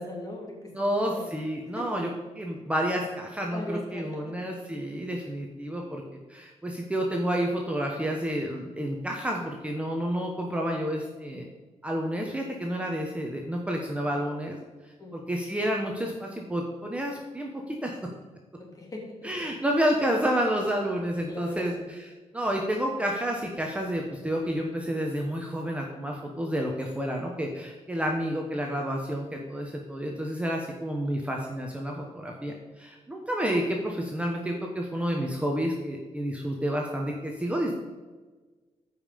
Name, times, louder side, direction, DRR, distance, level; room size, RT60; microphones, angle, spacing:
voice 1, 0.0-1.2 1.7-1.9 3.5-4.2 15.0-15.2 18.6-19.3 21.3-21.8, left 1 dB, 30° left, -1 dB, 2.9 m, -39 dB
voice 2, 0.7-2.1 2.4-6.0 6.3-11.5 11.8-14.6 15.1-18.0 19.2-37.7, equal, 10° right, 0 dB, 1.1 m, -30 dB
14.0 x 5.6 x 5.3 m, 1.3 s
wide cardioid pair, 135°, 12 cm